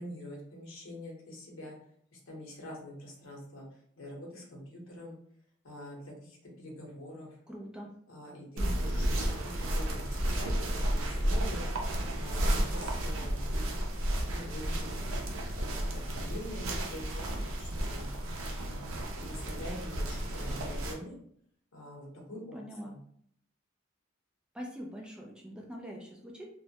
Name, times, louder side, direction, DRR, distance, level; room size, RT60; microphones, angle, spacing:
voice 1, 0.0-1.8 2.1-3.7 4.0-5.2 5.6-7.4 8.1-11.7 12.2-15.1 15.6-18.1 18.6-21.1 21.7-23.0, left 1 dB, 80° left, -2 dB, 0.8 m, -45 dB
voice 2, 7.5-7.9 22.5-22.9 24.5-26.4, equal, 5° right, -1 dB, 0.3 m, -43 dB
sound 1, 8.6-20.9, right 1 dB, 85° right, 0.5 m, -32 dB
2.2 x 2.1 x 2.7 m, 0.65 s
head